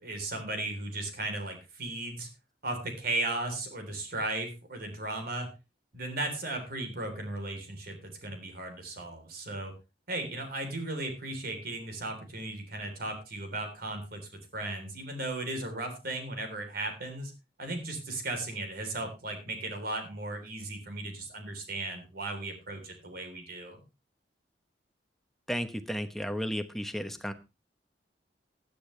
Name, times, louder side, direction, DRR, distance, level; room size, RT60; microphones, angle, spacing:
voice 1, 0.0-2.3 2.6-5.5 5.9-9.7 10.1-14.2 14.5-17.3 17.6-23.8, right 2 dB, 60° right, 5 dB, 3.7 m, -36 dB
voice 2, 25.5-27.3, equal, ahead, 8 dB, 1.1 m, -33 dB
15.5 x 10.5 x 3.3 m, 0.27 s
head